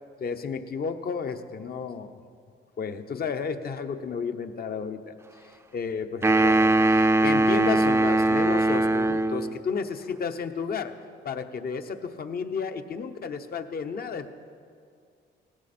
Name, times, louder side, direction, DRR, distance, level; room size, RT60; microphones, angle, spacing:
voice 1, 0.2-2.2 2.8-5.2 5.4-10.9 11.2-14.3, left 5 dB, 50° left, 8 dB, 1.0 m, -32 dB
sound 1, 6.2-9.6, right 2 dB, 15° right, 0.5 m, -21 dB
18.0 x 16.5 x 4.4 m, 2.3 s
cardioid pair, 90°, 20 cm